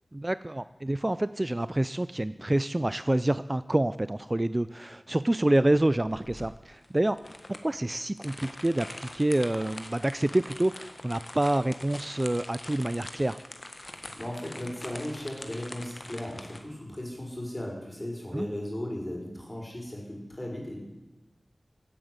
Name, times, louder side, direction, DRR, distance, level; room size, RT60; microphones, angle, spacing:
voice 1, 0.1-7.2 7.6-13.4 18.3-18.5, right 1 dB, 25° right, 15 dB, 0.4 m, -27 dB
sound 1, 6.0-16.6, left 1 dB, 40° left, 1.7 m, -44 dB
voice 2, 13.9-20.8, left 1 dB, 20° left, -1 dB, 5.5 m, -36 dB
16.5 x 8.9 x 7.9 m, 1.1 s
wide cardioid pair, 60°, 0 cm